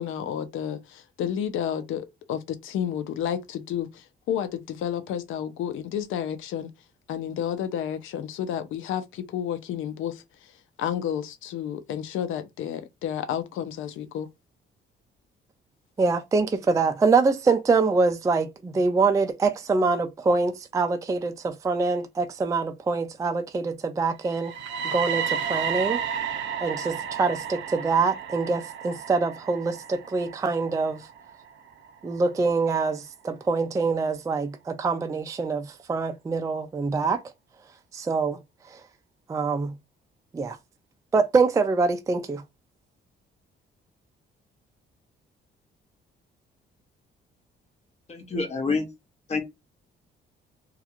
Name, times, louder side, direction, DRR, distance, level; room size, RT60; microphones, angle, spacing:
voice 1, 0.0-6.7 7.1-10.2 10.8-14.3, left 9 dB, 85° left, 0.5 m, -31 dB
voice 2, 16.0-24.5 24.8-26.0 26.6-31.1 32.0-37.2 37.9-38.4 38.7-38.8 39.3-39.8 40.3-40.6 41.1-42.4, right 4 dB, 15° right, 0.3 m, -25 dB
sound 1, 24.3-32.2, right 7 dB, 70° right, 0.5 m, -33 dB
voice 3, 48.1-48.9 49.3-49.4, left 4 dB, 35° left, 0.9 m, -27 dB
2.4 x 2.2 x 2.9 m
cardioid pair, 90°, 20 cm